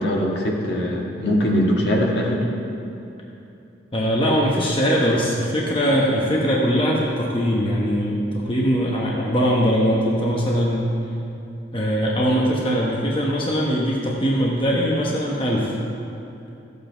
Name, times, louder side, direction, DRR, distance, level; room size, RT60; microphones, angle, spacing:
voice 1, 0.0-2.4, equal, 65° left, -2 dB, 1.6 m, -21 dB
voice 2, 3.9-10.9 11.7-15.7, equal, 25° left, -3 dB, 1.0 m, -21 dB
14.0 x 8.1 x 4.5 m, 2.7 s
head